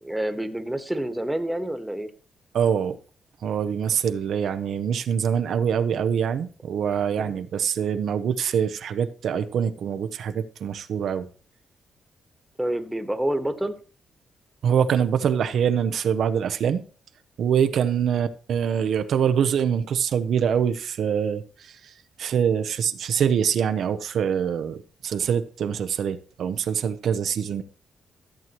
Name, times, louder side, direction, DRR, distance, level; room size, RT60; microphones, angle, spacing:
voice 1, 0.0-2.1 7.2-7.4 12.6-13.7, right 1 dB, 5° right, 1.4 m, -28 dB
voice 2, 2.5-3.0 3.4-11.3 14.6-16.8 17.4-27.6, right 8 dB, 75° right, 0.7 m, -24 dB
14.0 x 7.5 x 3.0 m
cardioid pair, 85°, 0 cm